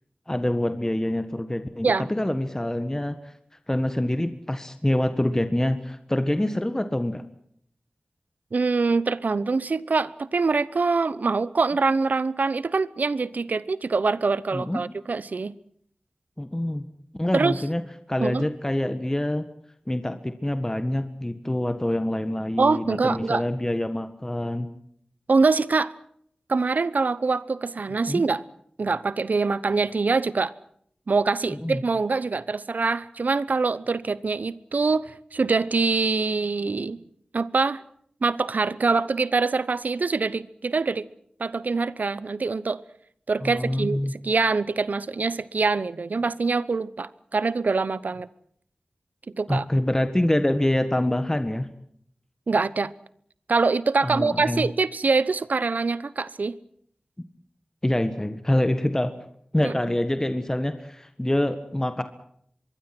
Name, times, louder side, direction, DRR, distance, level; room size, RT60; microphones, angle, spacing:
voice 1, 0.3-3.3 3.7-7.2 14.5-14.8 16.4-16.9 17.2-17.8 18.1-19.4 19.9-24.7 28.1-28.2 31.6-31.8 43.4-44.1 49.5-51.7 54.0-54.7 57.8-59.1 59.5-62.0, left 1 dB, 20° left, 1.6 m, -25 dB
voice 2, 8.5-15.5 17.3-17.6 18.2-18.5 22.6-23.4 25.3-25.9 26.5-28.4 28.8-30.5 31.1-37.0 37.3-37.8 38.2-41.1 41.4-42.8 43.3-48.3 49.4-49.6 52.5-52.9 53.5-56.6 59.6-59.7, right 4 dB, 80° right, 0.9 m, -24 dB
25.0 x 22.0 x 6.1 m
wide cardioid pair, 50°, 3 cm